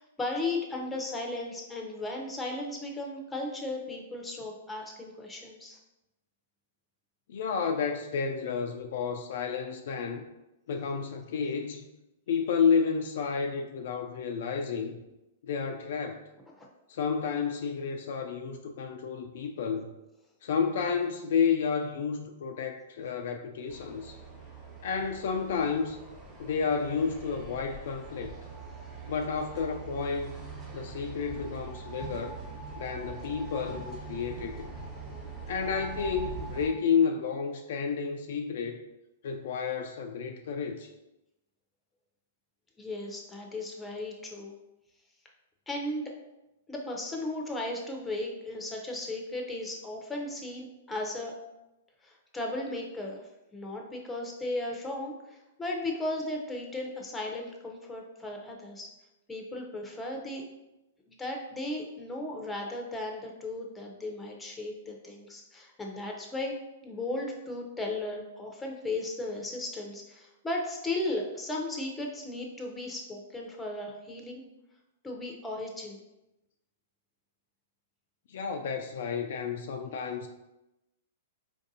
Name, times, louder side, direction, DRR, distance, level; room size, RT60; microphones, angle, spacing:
voice 1, 0.0-5.8 16.6-16.7 42.8-44.6 45.7-46.0 46.7-51.4 52.0-53.2 53.5-58.9 59.3-60.4 61.1-66.5 66.8-74.4 75.0-76.0, left 2 dB, 10° left, 0 dB, 0.7 m, -36 dB
voice 2, 7.3-10.2 10.7-11.9 12.3-15.0 15.4-16.3 16.9-19.9 20.4-24.2 24.8-26.0 26.4-28.3 29.1-30.3 30.7-32.4 32.8-34.7 35.5-38.8 39.2-40.9 78.3-80.3, left 6 dB, 65° left, 5 dB, 0.3 m, -31 dB
sound 1, 23.7-36.7, right 4 dB, 20° right, 1.1 m, -42 dB
4.5 x 2.6 x 2.7 m, 0.95 s
hypercardioid pair, 125°, 0 cm